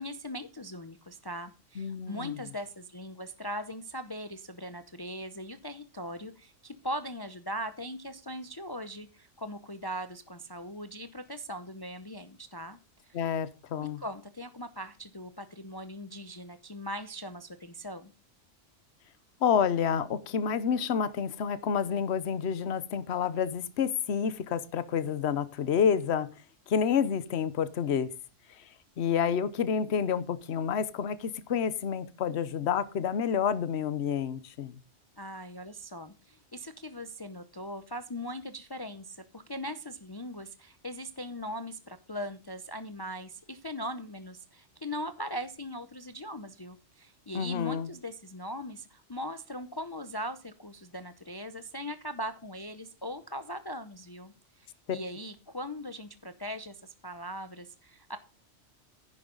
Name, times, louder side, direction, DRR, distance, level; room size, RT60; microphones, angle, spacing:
voice 1, 0.0-12.8 13.0-13.3 13.8-18.1 35.2-54.3 54.6-58.2, equal, 25° left, 0.7 m, -40 dB
voice 2, 1.8-2.4 13.1-14.0 19.4-26.3 26.7-28.1 29.0-34.8 47.3-47.9, left 7 dB, 65° left, 1.1 m, -29 dB
10.5 x 10.5 x 3.9 m
omnidirectional pair, 1.2 m